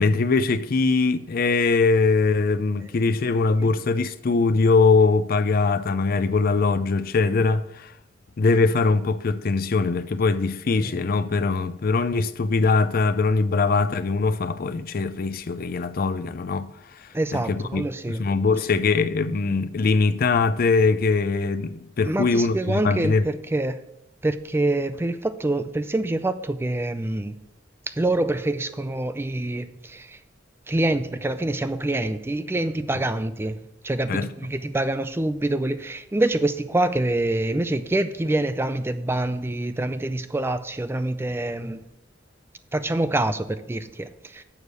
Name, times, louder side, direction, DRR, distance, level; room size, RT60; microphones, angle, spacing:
voice 1, 0.0-7.9 8.4-17.8 18.1-23.2 34.1-34.3, left 4 dB, 50° left, 0.4 m, -22 dB
voice 2, 17.1-18.3 22.0-23.8 24.2-27.4 27.9-30.2 30.7-41.8 42.7-44.4, right 2 dB, 10° right, 0.4 m, -26 dB
7.1 x 6.4 x 6.6 m
head